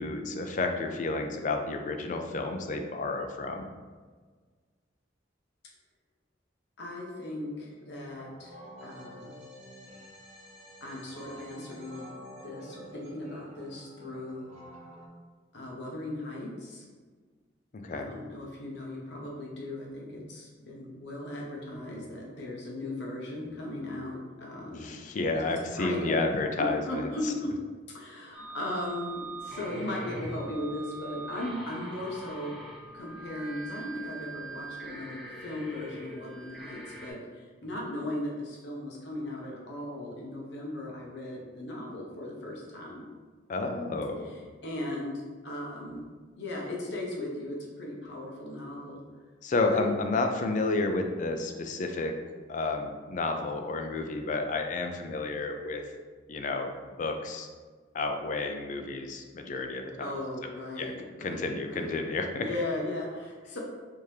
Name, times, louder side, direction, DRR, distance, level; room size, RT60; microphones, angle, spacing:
voice 1, 0.0-3.7 17.8-18.1 24.7-27.1 43.5-44.2 49.4-52.1 52.5-55.8 56.3-57.5 57.9-60.1 60.8-60.9 61.2-62.4, left 3 dB, 40° left, 5 dB, 0.3 m, -31 dB
voice 2, 6.8-9.4 10.8-12.1 12.4-14.5 15.5-16.9 17.9-25.0 25.3-25.4 25.8-26.2 26.6-27.6 27.9-32.6 32.9-43.0 44.3-46.1 46.4-49.0 49.7-49.9 60.0-62.0 62.4-63.6, left 1 dB, 65° left, -2 dB, 0.7 m, -37 dB
sound 1, 8.0-15.1, equal, 35° right, 0.6 m, -49 dB
sound 2, 28.3-37.1, right 2 dB, ahead, 0.7 m, -42 dB
3.5 x 2.8 x 3.2 m, 1.5 s
head